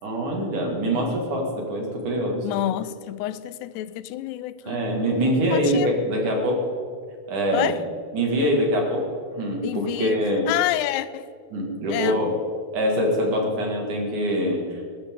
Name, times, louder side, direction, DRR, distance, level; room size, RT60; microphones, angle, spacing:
voice 1, 0.0-2.5 4.7-6.7 7.3-7.8 8.1-9.1 9.4-10.5 11.5-12.3 12.7-14.8, equal, 55° right, 3.4 m, -24 dB
voice 2, 2.4-4.8 5.5-5.9 7.5-7.8 9.6-10.2 10.5-11.3 11.9-12.3, left 14 dB, 85° left, 2.6 m, -28 dB
20.5 x 13.0 x 3.8 m
omnidirectional pair, 4.8 m